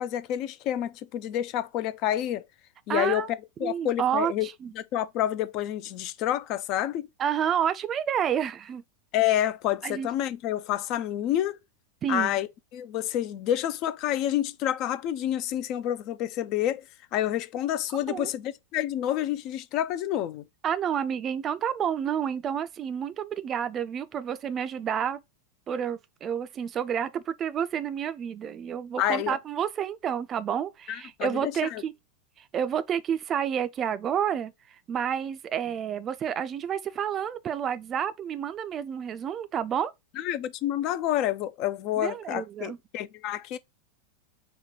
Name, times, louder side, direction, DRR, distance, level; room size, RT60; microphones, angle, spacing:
voice 1, 0.0-2.4 2.9-3.3 3.6-4.5 4.8-7.1 9.1-11.6 12.1-12.5 12.7-16.8 17.1-20.4 29.0-29.4 30.9-31.8 40.2-43.6, left 12 dB, 40° left, 0.4 m, -28 dB
voice 2, 2.9-3.3 3.6-4.7 7.2-8.8 9.8-10.1 12.0-12.4 18.1-18.3 20.6-25.2 25.7-31.9 32.4-39.9 42.0-42.8, right 8 dB, 25° right, 0.4 m, -29 dB
4.3 x 2.1 x 4.2 m
figure-of-eight pair, 90°, 0 cm